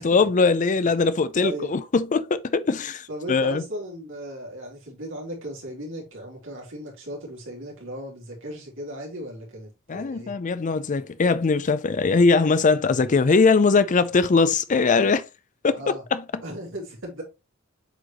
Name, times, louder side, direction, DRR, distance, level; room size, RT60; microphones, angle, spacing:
voice 1, 0.0-3.6 9.9-15.2 15.6-16.4, left 4 dB, 35° left, 0.4 m, -21 dB
voice 2, 1.4-1.7 3.1-10.3 15.7-16.0 16.4-17.2, equal, 60° right, 3.5 m, -36 dB
7.9 x 4.9 x 3.0 m
head